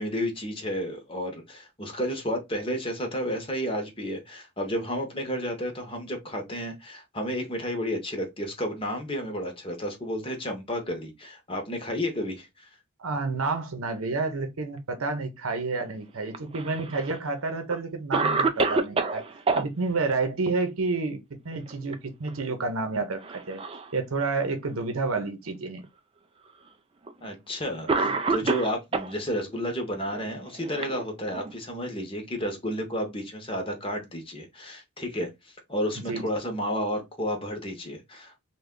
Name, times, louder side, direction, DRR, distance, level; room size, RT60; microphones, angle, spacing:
voice 1, 0.0-12.7 27.2-38.4, equal, 25° left, 0.8 m, -32 dB
voice 2, 13.0-19.2 19.5-23.6 23.9-25.8 36.0-36.2, right 3 dB, 75° right, 0.7 m, -29 dB
Cough, 16.3-17.2 17.7-17.8 18.1-19.6 21.5-21.9 22.3-22.4 23.2-23.9 24.7-24.8 25.8-25.9 27.1-27.2 27.9-29.1 30.1-31.5, right 3 dB, 25° right, 0.3 m, -27 dB
3.3 x 2.2 x 3.6 m
head